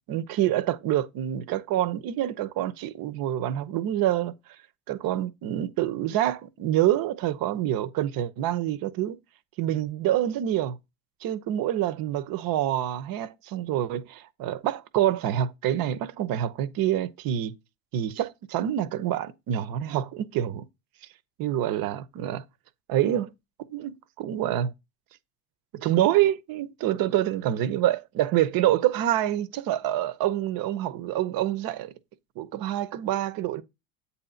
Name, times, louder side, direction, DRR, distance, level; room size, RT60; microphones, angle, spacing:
voice 1, 0.1-4.3 4.9-9.2 9.6-10.8 11.2-17.5 17.9-20.7 21.4-22.4 22.9-23.3 23.7-24.7 25.7-31.9 32.4-33.6, right 12 dB, 45° right, 0.9 m, -26 dB
8.3 x 2.8 x 5.7 m
hypercardioid pair, 85°, 47 cm